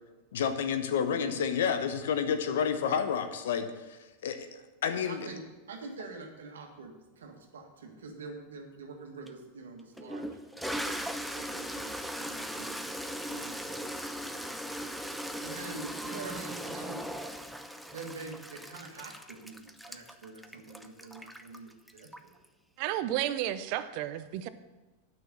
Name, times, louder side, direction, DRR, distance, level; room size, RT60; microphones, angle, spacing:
voice 1, 0.3-4.5 4.8-5.3, left 7 dB, 75° left, 8 dB, 0.9 m, -30 dB
voice 2, 5.1-10.4 10.7-11.0 11.3-12.8 13.3-14.5 15.4-17.1 17.9-22.3, right 3 dB, 80° right, 3 dB, 1.7 m, -46 dB
Toilet flush, 9.3-9.4 10.0-22.4, equal, ahead, 0.7 m, -39 dB
voice 3, 22.8-24.5, right 12 dB, 55° right, 12 dB, 0.7 m, -32 dB
9.3 x 6.1 x 7.0 m, 1.1 s
hypercardioid pair, 100°, 0 cm